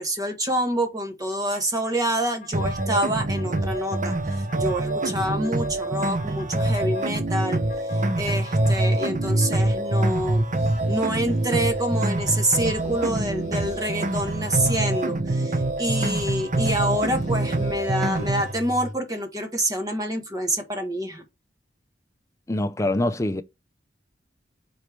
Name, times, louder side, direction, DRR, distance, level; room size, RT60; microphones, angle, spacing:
voice 1, 0.0-7.6 7.9-10.4 10.9-21.2, right 1 dB, 20° right, 1.6 m, -27 dB
sound 1, 1.8-9.5 9.8-12.0 12.5-15.0 15.6-18.9, left 1 dB, 45° left, 1.4 m, -42 dB
sound 2, 2.5-18.5, right 2 dB, 45° right, 0.8 m, -25 dB
voice 2, 22.5-23.4, left 1 dB, 15° left, 0.6 m, -24 dB
4.7 x 4.3 x 5.2 m
head